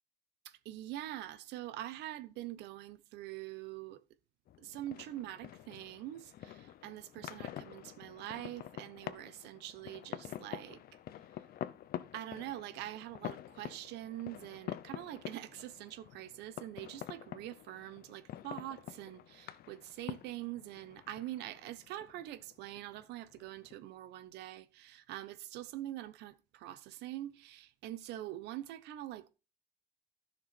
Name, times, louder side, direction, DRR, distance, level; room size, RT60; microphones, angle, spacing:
voice 1, 0.4-4.0 4.6-10.8 12.1-29.3, right 14 dB, 85° right, 1.0 m, -44 dB
sound 1, 4.5-23.8, left 12 dB, 65° left, 0.7 m, -47 dB
12.5 x 6.6 x 4.3 m
cardioid pair, 110°, 17 cm